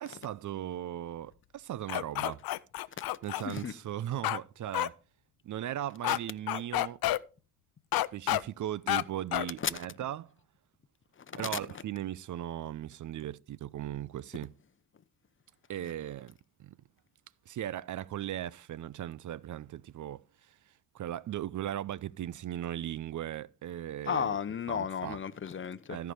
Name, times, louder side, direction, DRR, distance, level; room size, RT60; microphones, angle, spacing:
voice 1, 0.0-2.4 3.2-5.0 5.4-7.0 8.0-10.3 11.3-14.5 15.7-16.7 17.5-20.6 20.9-24.4 24.7-25.2 25.9-26.1, right 12 dB, 50° right, 0.5 m, -38 dB
sound 1, 1.9-3.4 4.2-4.4 4.7-4.9 6.0-6.2 6.5-7.2 7.9-8.4 8.9-9.0 9.3-9.5, left 15 dB, 65° left, 0.6 m, -29 dB
voice 2, 3.4-3.7 9.6-9.7 11.3-11.6 24.1-26.0, left 7 dB, 30° left, 0.9 m, -33 dB
14.0 x 4.7 x 5.2 m
supercardioid pair, 55°, 39 cm